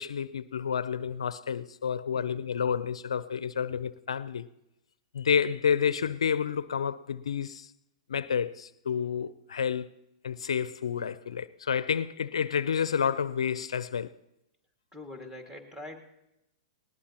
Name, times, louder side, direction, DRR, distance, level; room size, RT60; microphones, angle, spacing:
voice 1, 0.0-4.5 5.1-7.7 8.1-9.9 10.2-14.1, left 7 dB, 75° left, 0.4 m, -30 dB
voice 2, 14.9-16.0, left 2 dB, 10° right, 2.1 m, -44 dB
19.5 x 19.0 x 2.9 m
hypercardioid pair, 110°, 3 cm